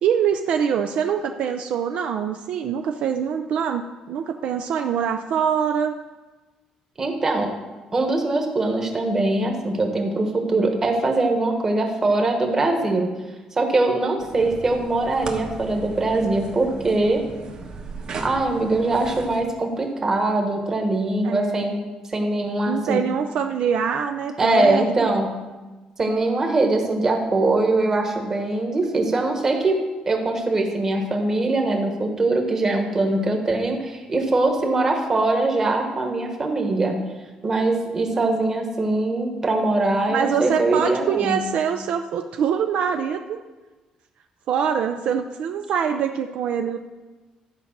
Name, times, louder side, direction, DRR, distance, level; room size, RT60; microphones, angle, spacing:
voice 1, 0.0-5.9 21.2-21.8 22.7-25.1 38.1-38.5 40.1-43.4 44.5-46.8, right 7 dB, 60° right, 6 dB, 0.5 m, -24 dB
voice 2, 7.0-7.5 7.9-13.1 13.6-17.2 18.2-23.0 24.4-25.4 26.0-29.8 30.1-37.0 37.4-41.5, right 2 dB, 20° right, 3 dB, 1.3 m, -22 dB
sound 1, 14.2-19.4, right 4 dB, 45° right, 1.3 m, -37 dB
12.0 x 5.3 x 7.2 m, 1.2 s
cardioid pair, 180°, 2 cm